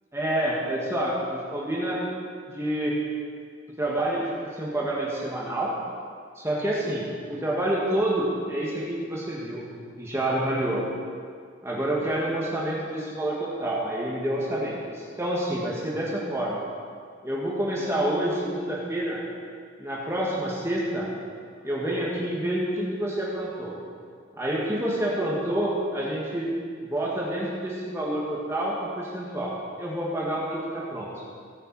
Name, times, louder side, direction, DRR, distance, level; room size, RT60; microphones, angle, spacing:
voice 1, 0.1-2.0 2.5-3.0 3.8-5.7 6.4-9.6 10.0-10.8 11.6-16.6 17.2-19.2 19.8-21.1 21.6-23.7 24.4-26.5 26.8-31.1, right 1 dB, 15° right, -5 dB, 1.5 m, -28 dB
18.0 x 6.7 x 4.7 m, 2.1 s
head